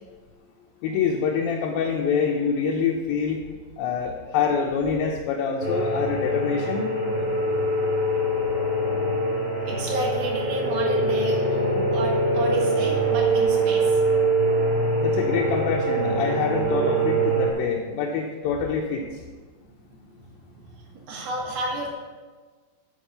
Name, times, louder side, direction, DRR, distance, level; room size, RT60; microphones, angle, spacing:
voice 1, 0.8-3.4 3.8-6.9 15.0-19.1, left 6 dB, 80° left, 0 dB, 2.5 m, -25 dB
sound 1, 5.6-17.5, right 1 dB, 20° right, 2.2 m, -23 dB
voice 2, 9.7-14.0 19.6-21.9, right 2 dB, 80° right, -3 dB, 3.6 m, -31 dB
7.8 x 6.7 x 6.8 m, 1.4 s
omnidirectional pair, 4.2 m